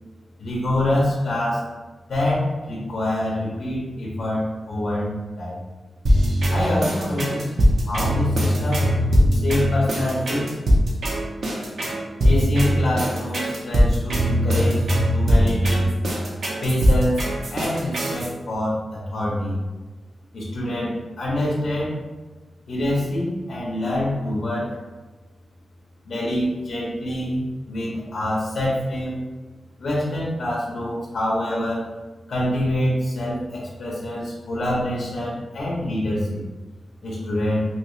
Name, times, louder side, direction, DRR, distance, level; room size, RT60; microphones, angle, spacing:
voice 1, 0.4-1.7 2.1-5.1 5.4-5.6 6.5-7.5 7.9-8.9 9.3-10.5 12.2-14.8 15.1-15.9 16.6-19.6 20.3-21.9 22.7-24.8 26.0-29.2 29.8-31.8 32.3-36.4 37.0-37.6, left 1 dB, 60° left, -5 dB, 0.8 m, -25 dB
sound 1, 6.1-18.3, equal, 60° right, 0.7 m, -20 dB
2.9 x 2.9 x 3.1 m, 1.2 s
wide cardioid pair, 165°, 0 cm